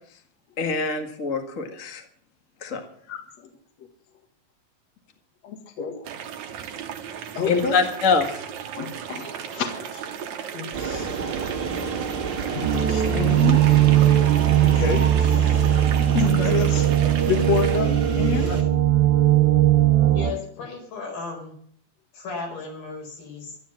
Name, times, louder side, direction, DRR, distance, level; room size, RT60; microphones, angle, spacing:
voice 1, 0.6-2.0 2.6-2.8 7.5-8.4, left 4 dB, 35° left, 4 dB, 1.3 m, -24 dB
voice 2, 5.4-6.0 7.4-7.8 8.8-10.2 10.5-11.1 12.5-13.6 14.6-15.8 16.1-16.9 17.3-18.6, left 7 dB, 50° left, 4 dB, 2.7 m, -28 dB
sound 1, 6.0-17.8, right 8 dB, 60° right, 2.2 m, -36 dB
sound 2, 10.7-18.6, right 5 dB, 40° right, 2.0 m, -30 dB
sound 3, 12.6-20.3, right 12 dB, 80° right, 2.7 m, -19 dB
voice 3, 20.1-21.5 22.1-23.6, left 4 dB, 75° left, 1 dB, 6.4 m, -35 dB
12.5 x 12.0 x 7.5 m, 0.62 s
omnidirectional pair, 4.2 m